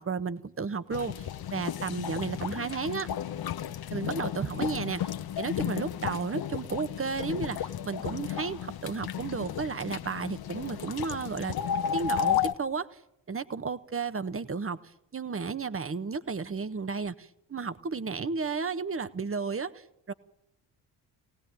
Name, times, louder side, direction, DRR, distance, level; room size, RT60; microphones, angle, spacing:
voice 1, 0.0-3.1 3.9-11.5 11.9-12.9 13.3-14.8 15.1-20.1, right 5 dB, 25° right, 14 dB, 1.5 m, -33 dB
sound 1, 0.9-12.5, left 9 dB, 50° left, 1.3 m, -33 dB
24.5 x 18.5 x 9.2 m, 0.80 s
hypercardioid pair, 45°, 49 cm